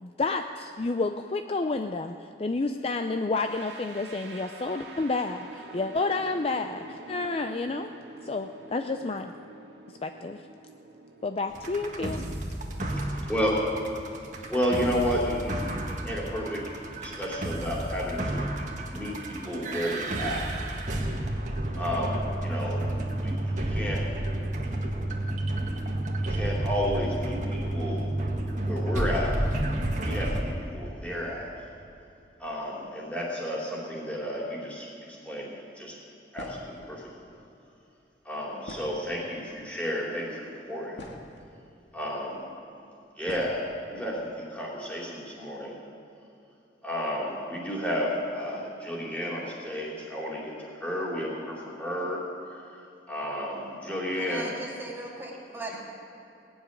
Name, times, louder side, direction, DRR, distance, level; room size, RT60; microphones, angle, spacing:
voice 1, 0.0-7.9 8.2-9.3 10.0-10.4 11.2-12.2, left 3 dB, 35° left, 6 dB, 0.4 m, -30 dB
sound 1, 3.4-14.3, right 3 dB, 75° right, 1.7 m, -47 dB
sound 2, 11.5-30.4, right 1 dB, 45° right, 1.7 m, -31 dB
voice 2, 12.8-13.6 14.5-16.7 17.0-18.5 18.9-20.4 21.8-22.8 23.2-24.1 26.2-28.1 28.6-29.3 30.0-31.5 32.4-34.9 35.2-36.0 36.3-37.3 38.3-41.0 41.9-42.5 43.2-45.8 46.8-52.2 53.1-54.5, equal, 10° left, -5 dB, 3.4 m, -32 dB
sound 3, 36.3-36.8 38.6-39.4 40.2-40.3 40.7-41.5 42.4-42.5 43.3-43.6, left 1 dB, 90° left, 2.1 m, -43 dB
voice 3, 54.2-55.8, right 1 dB, 15° right, -3 dB, 2.2 m, -38 dB
18.5 x 7.3 x 9.7 m, 2.8 s
head